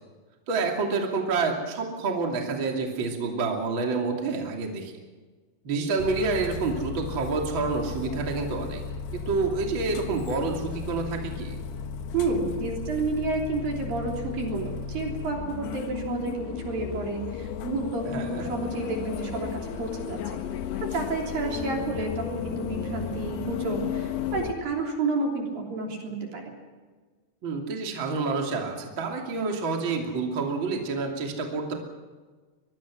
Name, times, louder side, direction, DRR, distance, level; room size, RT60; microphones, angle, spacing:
voice 1, 0.5-4.9 5.6-8.8 9.1-11.6 18.1-18.4 27.4-31.7, right 4 dB, 35° right, 1 dB, 2.9 m, -28 dB
sound 1, 6.0-24.5, left 7 dB, 75° left, 3.3 m, -34 dB
voice 2, 12.1-20.4 20.8-26.5, right 3 dB, 55° right, 1 dB, 4.9 m, -30 dB
24.0 x 22.0 x 6.3 m, 1.4 s
omnidirectional pair, 4.9 m